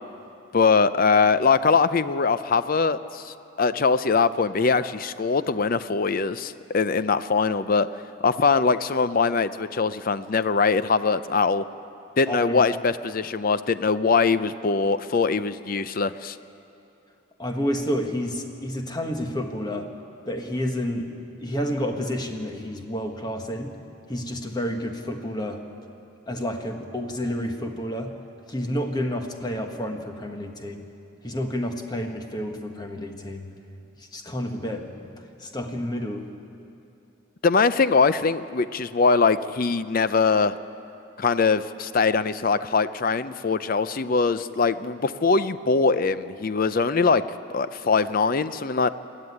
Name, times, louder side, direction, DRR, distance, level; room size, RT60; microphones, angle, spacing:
voice 1, 0.5-7.9 8.2-11.7 12.2-16.4 37.4-40.6 41.2-47.2 47.5-48.9, left 4 dB, 45° left, 14 dB, 0.5 m, -22 dB
voice 2, 12.3-12.6 17.4-19.9 20.3-21.1 21.4-23.7 24.1-25.6 26.3-28.2 28.5-30.9 31.2-33.5 34.0-35.0 35.4-36.3, equal, 20° left, 4 dB, 1.3 m, -30 dB
20.5 x 13.0 x 9.7 m, 2.8 s
head